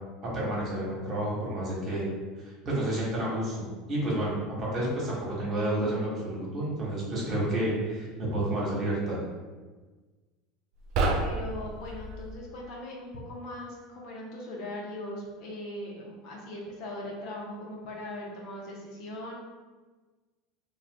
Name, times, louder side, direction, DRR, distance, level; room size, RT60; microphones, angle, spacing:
voice 1, 0.2-2.1 2.4-9.2, right 1 dB, 40° right, -5 dB, 1.2 m, -30 dB
sound 1, 10.8-12.4, right 2 dB, 60° right, 0.4 m, -30 dB
voice 2, 11.2-19.3, left 1 dB, 60° left, -2 dB, 0.7 m, -39 dB
2.4 x 2.3 x 3.4 m, 1.3 s
hypercardioid pair, 85°, 0 cm